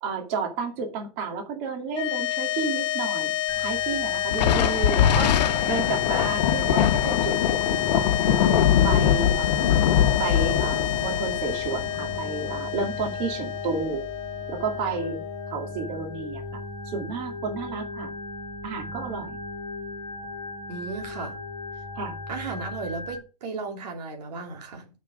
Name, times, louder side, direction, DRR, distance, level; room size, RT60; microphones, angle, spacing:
voice 1, 0.0-5.4 5.6-7.4 7.7-8.3 8.8-9.7 10.2-14.0 14.5-15.2 15.5-16.4 16.8-18.1 18.6-19.4 22.0-22.2, right 4 dB, 40° right, 2.3 m, -31 dB
sound 1, 1.9-16.3, left 14 dB, 25° left, 0.6 m, -29 dB
Organ, 3.5-23.2, left 2 dB, ahead, 2.1 m, -38 dB
Thunder, 4.3-13.1, left 9 dB, 85° left, 1.1 m, -23 dB
voice 2, 20.7-21.3 22.3-24.9, right 4 dB, 75° right, 2.6 m, -35 dB
7.4 x 6.1 x 4.8 m
supercardioid pair, 160°, 21 cm